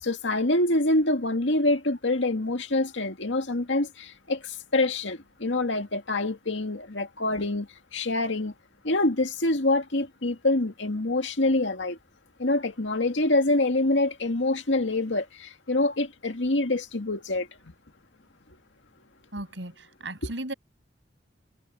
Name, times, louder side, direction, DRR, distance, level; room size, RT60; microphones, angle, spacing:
voice 1, 0.0-8.5 8.8-12.0 12.4-17.5 20.2-20.3, left 2 dB, 85° left, 2.2 m, -26 dB
voice 2, 19.3-20.5, right 1 dB, 75° right, 7.0 m, -36 dB
head